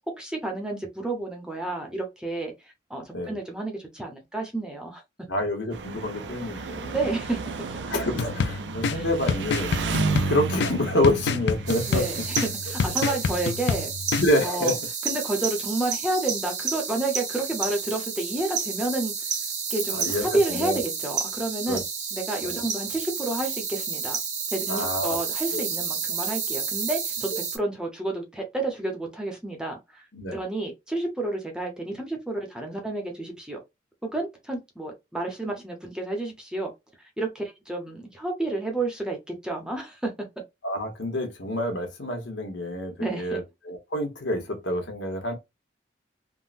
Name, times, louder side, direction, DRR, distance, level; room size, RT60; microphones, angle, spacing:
voice 1, 0.2-5.0 6.5-6.7 6.9-7.4 8.9-9.1 11.9-13.9 14.4-14.8 15.0-19.1 19.7-21.8 22.1-24.2 24.5-30.0 30.3-33.6 34.0-36.7 37.2-40.1 43.0-43.4, right 2 dB, 5° right, 0.7 m, -30 dB
voice 2, 5.3-7.0 7.9-9.8 10.3-12.1 13.0-13.1 14.2-14.8 19.9-20.8 21.7-21.8 22.4-22.6 24.7-25.2 25.5-25.6 27.3-27.4 30.1-30.4 40.6-45.3, left 1 dB, 85° left, 1.1 m, -27 dB
Engine, 5.7-12.3, right 4 dB, 75° right, 0.5 m, -32 dB
sound 1, 8.2-14.2, left 5 dB, 65° left, 0.3 m, -28 dB
sound 2, 11.7-27.6, right 6 dB, 40° right, 0.7 m, -31 dB
3.6 x 2.1 x 2.5 m
head